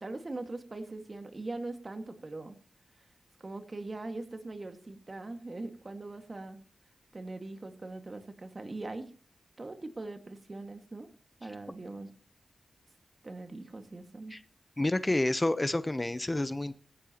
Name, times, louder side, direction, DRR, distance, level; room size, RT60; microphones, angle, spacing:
voice 1, 0.0-2.6 3.4-6.6 7.1-9.1 9.6-11.1 11.4-12.1 13.2-14.4, right 2 dB, 40° right, 7 dB, 1.9 m, -41 dB
voice 2, 14.8-16.8, left 1 dB, 25° left, 13 dB, 0.8 m, -29 dB
15.5 x 15.5 x 3.0 m, 0.39 s
cardioid pair, 55°, 0 cm